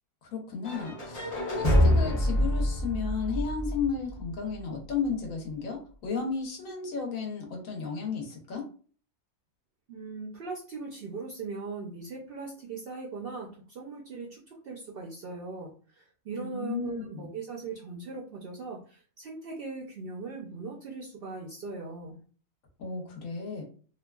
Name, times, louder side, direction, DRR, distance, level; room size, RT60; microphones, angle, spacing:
voice 1, 0.2-8.6 16.4-17.3 22.8-23.7, left 5 dB, 75° left, 2 dB, 1.2 m, -34 dB
sound 1, 0.6-4.6, equal, 40° left, 0.5 m, -26 dB
voice 2, 9.9-22.2, right 4 dB, 65° right, -1 dB, 0.6 m, -39 dB
2.7 x 2.3 x 2.2 m, 0.41 s
omnidirectional pair, 1.4 m